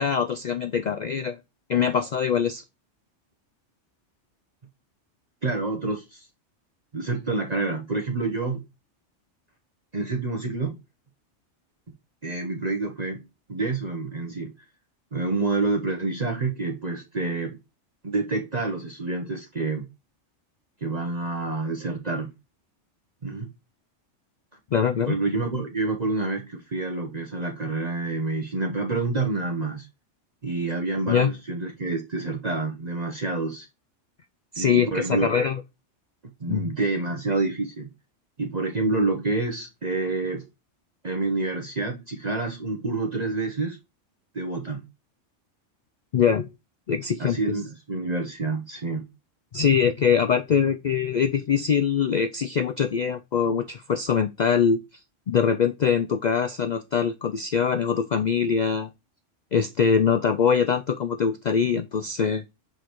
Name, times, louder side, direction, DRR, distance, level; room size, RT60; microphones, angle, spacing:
voice 1, 0.0-1.4 1.7-2.6 24.7-25.2 31.1-31.3 34.5-35.6 36.5-36.6 46.1-46.5 46.9-47.6 49.5-54.8 55.3-58.9 59.5-62.4, left 7 dB, 65° left, 0.4 m, -23 dB
voice 2, 5.4-6.2 6.9-8.6 9.9-10.8 12.2-13.2 13.5-14.5 15.1-17.6 18.0-19.8 20.8-22.3 23.2-23.5 25.1-29.9 30.4-33.7 34.6-35.3 36.4-37.9 38.4-40.4 41.0-43.8 44.3-44.8 47.2-49.1, right 3 dB, 35° right, 1.0 m, -28 dB
6.2 x 5.0 x 3.0 m
omnidirectional pair, 1.3 m